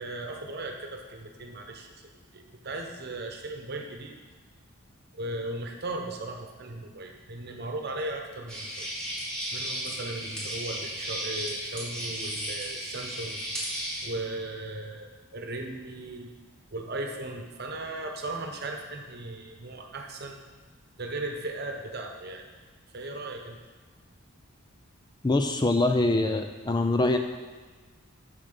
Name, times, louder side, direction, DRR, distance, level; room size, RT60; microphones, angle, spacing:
voice 1, 0.0-1.9 2.3-4.2 5.1-8.9 9.5-13.4 14.0-16.3 16.7-20.4 21.0-22.4 22.9-23.6, right 2 dB, 50° right, 3 dB, 1.1 m, -37 dB
sound 1, 8.5-14.1, equal, 5° left, 2.5 m, -34 dB
voice 2, 25.2-27.2, left 2 dB, 20° left, 6 dB, 0.4 m, -24 dB
7.4 x 6.6 x 6.7 m, 1.4 s
head